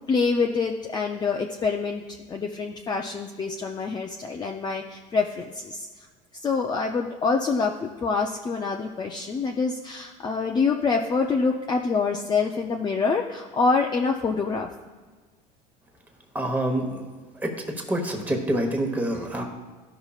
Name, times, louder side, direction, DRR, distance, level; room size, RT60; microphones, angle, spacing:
voice 1, 0.1-5.9 6.4-14.7, left 4 dB, 25° left, 2 dB, 0.5 m, -26 dB
voice 2, 16.3-17.0 17.4-17.5 17.9-19.4, right 1 dB, 10° right, 2 dB, 1.2 m, -26 dB
13.0 x 5.6 x 2.4 m, 1.4 s
supercardioid pair, 110°, 17 cm